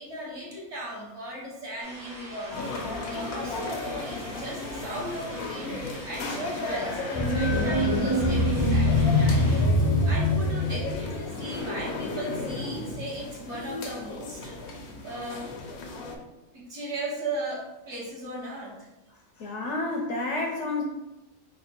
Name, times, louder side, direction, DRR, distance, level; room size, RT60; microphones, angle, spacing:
voice 1, 0.0-2.7 3.1-15.5 16.5-18.9, right 1 dB, 55° right, -5 dB, 1.3 m, -37 dB
sound 1, 1.8-9.6, right 1 dB, 80° right, 1.8 m, -44 dB
sound 2, 2.5-16.2, left 3 dB, 85° left, 1.1 m, -35 dB
sound 3, 7.2-11.4, left 1 dB, 30° left, 0.4 m, -23 dB
voice 2, 19.4-20.8, left 2 dB, 65° left, 1 dB, 0.8 m, -30 dB
4.1 x 2.1 x 4.3 m, 0.99 s
omnidirectional pair, 1.5 m